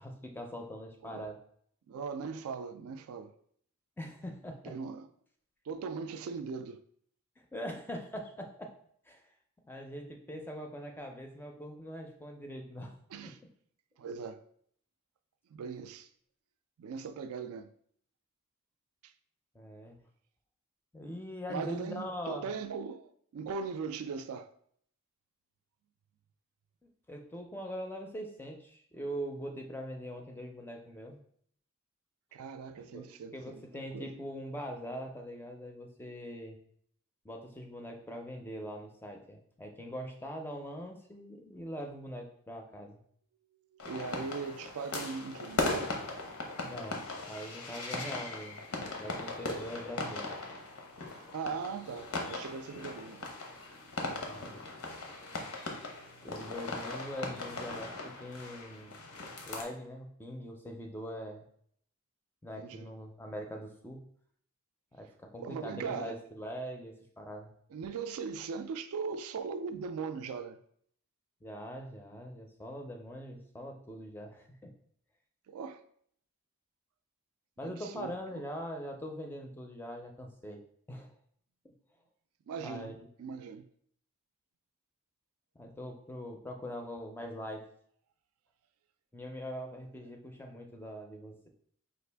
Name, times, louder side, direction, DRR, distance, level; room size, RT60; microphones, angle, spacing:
voice 1, 0.0-1.4 4.0-4.8 7.4-8.7 9.1-9.2 9.7-13.0 13.2-13.3 19.5-20.0 20.9-22.5 26.8-31.2 32.8-36.6 37.2-43.0 46.7-47.0 47.3-48.6 49.0-50.3 54.3-54.6 56.2-61.4 62.4-64.0 64.9-67.5 71.4-74.7 77.6-80.6 80.9-81.1 82.6-83.0 85.6-87.7 89.1-91.5, equal, 10° left, 0.4 m, -42 dB
voice 2, 1.9-3.3 4.6-5.1 5.7-6.8 13.1-13.4 14.0-14.4 15.5-16.1 16.8-17.7 21.5-24.5 32.3-34.1 43.8-45.9 51.1-53.3 62.5-62.9 65.4-66.2 67.7-70.6 75.5-75.8 77.6-78.5 82.5-83.7, right 5 dB, 75° right, 0.3 m, -39 dB
sound 1, 43.8-59.6, left 3 dB, 85° left, 0.8 m, -39 dB
5.1 x 2.4 x 3.3 m
head